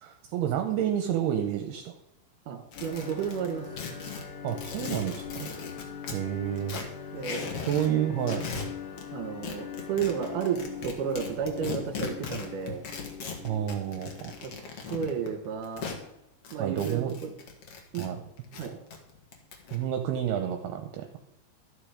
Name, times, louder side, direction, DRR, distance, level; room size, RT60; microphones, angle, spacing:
voice 1, 0.0-1.9 4.4-5.5 6.1-6.8 7.7-8.5 13.4-14.3 16.6-17.1 18.0-18.2 19.7-21.1, right 10 dB, 75° right, 6 dB, 2.5 m, -29 dB
voice 2, 2.5-3.7 7.1-7.4 9.1-12.8 14.4-14.5 14.9-15.9 16.5-17.3 17.9-18.1 18.5-18.8, right 7 dB, 60° right, 5 dB, 2.6 m, -32 dB
sound 1, 2.7-6.2 6.6-7.9 8.2-9.1 9.4-16.0 16.4-18.1 18.4-19.8, left 5 dB, 55° left, 1.8 m, -38 dB
sound 2, 2.8-14.4, left 8 dB, 75° left, 3.6 m, -42 dB
12.5 x 9.4 x 5.1 m, 0.88 s
omnidirectional pair, 5.0 m